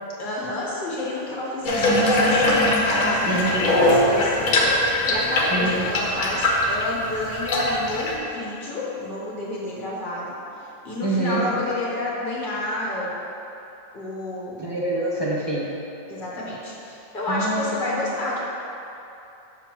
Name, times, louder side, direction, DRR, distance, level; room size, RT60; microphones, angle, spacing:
voice 1, 0.2-4.8 5.0-10.3 10.8-13.1 13.9-14.6 16.1-18.4, left 1 dB, 40° left, -5 dB, 1.3 m, -29 dB
Water tap faucet / Bathtub (filling or washing), 1.6-8.1, left 1 dB, 75° left, 1.3 m, -21 dB
voice 2, 3.3-3.7 5.5-5.9 11.0-11.4 14.6-15.7 17.3-18.0, right 2 dB, 25° right, -5 dB, 0.6 m, -26 dB
7.2 x 6.1 x 3.0 m, 2.8 s
omnidirectional pair, 1.4 m